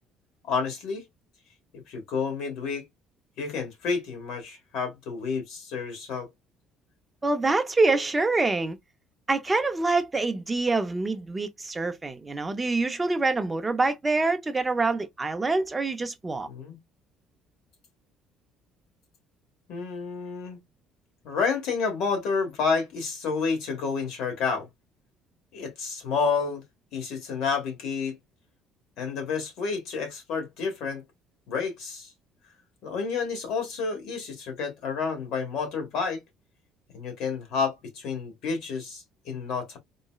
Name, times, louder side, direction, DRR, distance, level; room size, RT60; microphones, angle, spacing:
voice 1, 0.5-1.0 1.7-2.8 3.4-6.3 16.5-16.8 19.7-20.6 21.2-24.7 25.5-26.6 26.9-28.2 29.0-31.0 31.5-32.1 32.8-36.2 36.9-39.8, left 5 dB, 60° left, 1.4 m, -30 dB
voice 2, 7.2-8.8 9.3-16.5, right 3 dB, 15° right, 0.5 m, -25 dB
3.8 x 2.1 x 2.3 m
cardioid pair, 160°, 0 cm